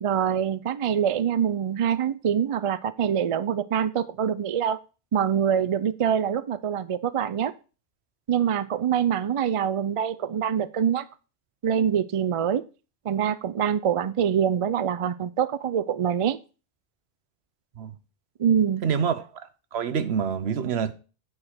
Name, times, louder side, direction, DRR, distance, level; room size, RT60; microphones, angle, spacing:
voice 1, 0.0-4.8 5.1-7.5 8.3-11.1 11.6-12.6 13.0-16.4 18.4-18.8, right 8 dB, 55° right, 0.3 m, -25 dB
voice 2, 18.8-19.2 19.7-20.9, right 7 dB, 70° right, 1.0 m, -26 dB
8.9 x 4.8 x 5.9 m
omnidirectional pair, 1.1 m